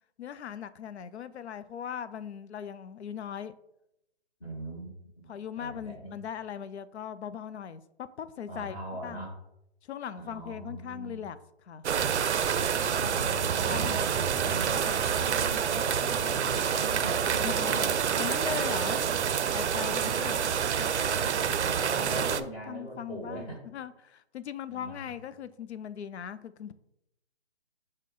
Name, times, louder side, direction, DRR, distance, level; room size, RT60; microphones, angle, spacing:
voice 1, 0.2-3.5 5.3-8.8 9.0-9.2 9.8-11.8 13.0-13.1 13.6-14.6 17.4-17.9 18.1-19.0 19.5-20.4 21.6-26.7, left 8 dB, 75° left, 14 dB, 0.5 m, -39 dB
voice 2, 4.4-4.9 5.2-5.3 5.6-6.2 8.5-9.3 10.2-11.2 12.6-18.0 19.8-23.6 24.7-25.0, right 1 dB, 15° left, -4 dB, 0.9 m, -41 dB
sound 1, 11.8-22.4, right 7 dB, 85° right, 0.5 m, -27 dB
6.5 x 2.2 x 3.7 m, 0.82 s
hypercardioid pair, 155°, 33 cm